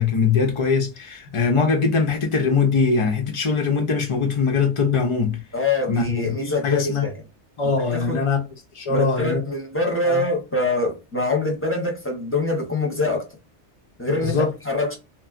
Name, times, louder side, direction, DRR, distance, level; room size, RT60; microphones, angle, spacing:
voice 1, 0.0-5.4 5.9-7.0 7.6-8.4 8.7-9.4 10.0-10.2 14.1-14.5, left 5 dB, 55° left, 0.3 m, -22 dB
voice 2, 5.5-7.1 7.9-8.2 8.9-13.3 14.0-15.0, left 2 dB, 15° left, 0.6 m, -24 dB
2.9 x 2.3 x 2.4 m
omnidirectional pair, 1.2 m